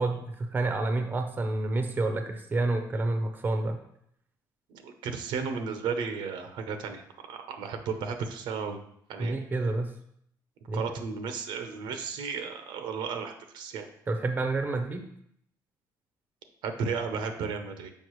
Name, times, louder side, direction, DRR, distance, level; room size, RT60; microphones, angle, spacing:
voice 1, 0.0-3.8 9.2-9.9 10.7-10.8 14.1-15.0, right 2 dB, 25° right, 5 dB, 0.7 m, -29 dB
voice 2, 4.8-7.0 7.3-8.8 9.1-9.4 10.7-13.9 16.6-17.9, right 5 dB, 80° right, 6 dB, 0.8 m, -34 dB
6.6 x 5.1 x 3.1 m, 0.71 s
cardioid pair, 130°, 8 cm